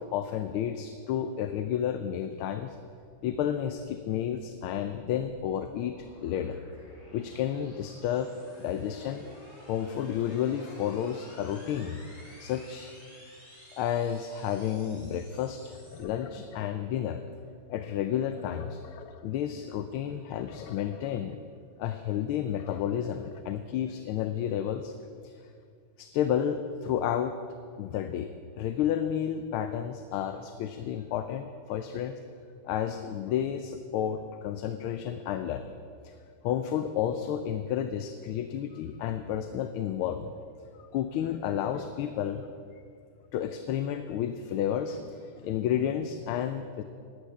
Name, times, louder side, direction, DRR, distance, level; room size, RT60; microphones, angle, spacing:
voice 1, 0.0-2.8 3.2-6.6 7.1-8.3 8.6-9.2 9.7-12.0 12.4-12.9 13.7-17.2 17.7-18.8 19.2-21.4 21.8-24.9 25.2-25.3 26.0-27.4 27.8-32.2 32.6-35.8 36.0-36.1 36.4-40.3 40.8-42.5 43.3-46.8, left 9 dB, 85° left, 9 dB, 1.5 m, -31 dB
sound 1, 3.6-16.0, left 1 dB, 45° left, 5.2 m, -53 dB
sound 2, 15.5-17.5 18.0-19.4 19.7-19.8 20.0-21.4 21.9-23.4, left 7 dB, 65° left, 0.9 m, -48 dB
11.5 x 10.0 x 8.2 m, 2.3 s
omnidirectional pair, 2.3 m